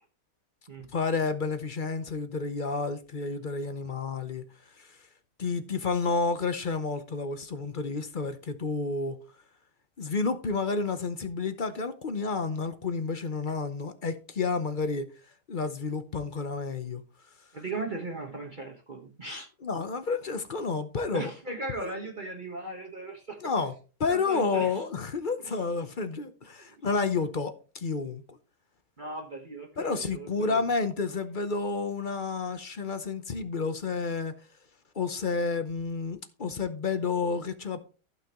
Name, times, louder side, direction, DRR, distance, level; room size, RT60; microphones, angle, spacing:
voice 1, 0.9-4.4 4.8-5.0 5.4-9.2 10.0-15.1 15.5-17.0 19.6-21.3 21.8-21.9 23.4-23.7 24.0-28.4 29.8-34.3 34.9-37.8, left 4 dB, 40° left, 0.8 m, -30 dB
voice 2, 17.5-19.5 21.1-23.5 24.1-24.8 25.4-25.6 26.6-26.8 29.0-30.7, right 2 dB, 35° right, 1.4 m, -38 dB
15.0 x 6.0 x 3.0 m
omnidirectional pair, 1.6 m